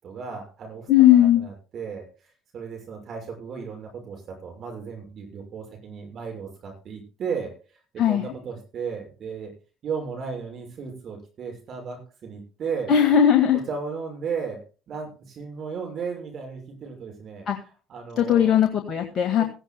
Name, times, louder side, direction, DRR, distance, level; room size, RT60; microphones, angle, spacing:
voice 1, 0.0-9.5 9.8-12.9 13.7-17.5 17.9-18.6 19.4-19.5, right 5 dB, 50° right, 2 dB, 6.5 m, -35 dB
voice 2, 0.9-1.4 8.0-8.2 12.9-13.6 17.5-17.6 18.2-19.4, left 10 dB, 50° left, 5 dB, 1.9 m, -18 dB
17.5 x 15.5 x 2.2 m, 0.35 s
hypercardioid pair, 55°, 0 cm